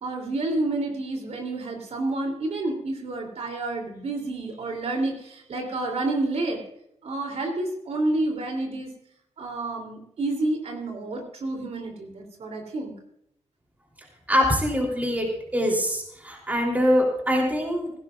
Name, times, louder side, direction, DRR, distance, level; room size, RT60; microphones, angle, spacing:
voice 1, 0.0-6.6 7.0-8.9 9.4-12.9, right 2 dB, 70° right, 2 dB, 3.1 m, -29 dB
voice 2, 14.3-17.9, equal, 15° right, -1 dB, 3.4 m, -23 dB
17.0 x 16.5 x 2.5 m, 0.74 s
wide cardioid pair, 180°, 11 cm